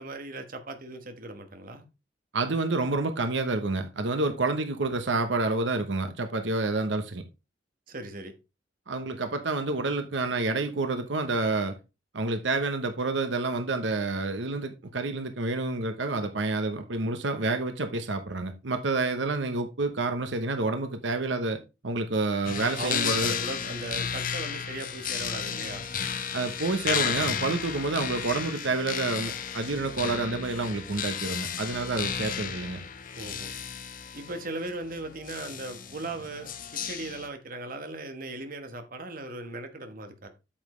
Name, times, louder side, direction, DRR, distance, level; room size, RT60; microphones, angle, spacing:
voice 1, 0.0-1.8 7.9-8.3 22.8-25.9 33.1-33.6 34.1-40.3, right 2 dB, 50° right, 1.4 m, -38 dB
voice 2, 2.3-7.2 8.9-11.8 12.1-23.3 26.3-32.8, right 3 dB, 85° right, 1.0 m, -29 dB
sound 1, 22.4-37.3, left 7 dB, 50° left, 1.0 m, -33 dB
Wind instrument woodwind instrument, 25.1-31.2, equal, 5° right, 2.4 m, -52 dB
8.7 x 7.3 x 3.2 m
head